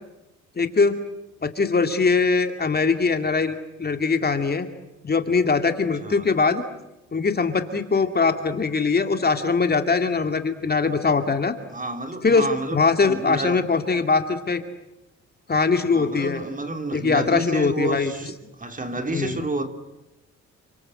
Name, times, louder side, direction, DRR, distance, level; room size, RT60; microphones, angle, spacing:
voice 1, 0.6-1.0 1.4-4.7 5.0-6.6 7.1-11.5 12.2-14.6 15.5-16.4 16.9-18.1 19.1-19.4, left 4 dB, 30° left, 7 dB, 2.5 m, -22 dB
voice 2, 11.7-12.8 13.1-13.6 15.9-19.7, right 2 dB, 25° right, 7 dB, 3.2 m, -30 dB
29.0 x 25.5 x 7.8 m, 0.95 s
cardioid pair, 90°, 30 cm